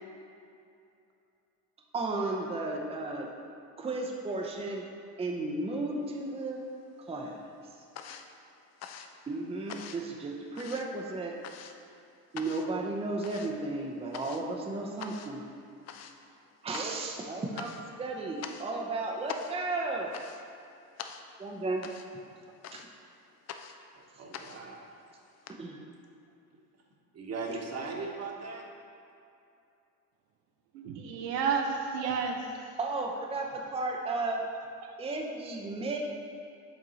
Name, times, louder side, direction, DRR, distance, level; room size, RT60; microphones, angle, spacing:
voice 1, 1.9-3.3 3.8-4.9 5.2-6.6 7.1-7.4 9.3-11.4 12.3-15.4 16.6-20.1 21.4-21.9 22.1-22.2 22.7-22.8 25.6-25.8 32.8-34.5 35.0-36.0, right 2 dB, 15° right, 0 dB, 0.6 m, -34 dB
sound 1, 6.2-7.0 7.2-25.5, left 7 dB, 35° left, 0.5 m, -46 dB
voice 2, 23.9-24.9 26.5-26.6 27.1-28.6, right 3 dB, 35° right, 0 dB, 1.2 m, -39 dB
voice 3, 30.7-32.7 34.8-34.9, right 5 dB, 85° right, 2 dB, 0.8 m, -31 dB
7.8 x 3.7 x 4.0 m, 2.6 s
hypercardioid pair, 75°, 46 cm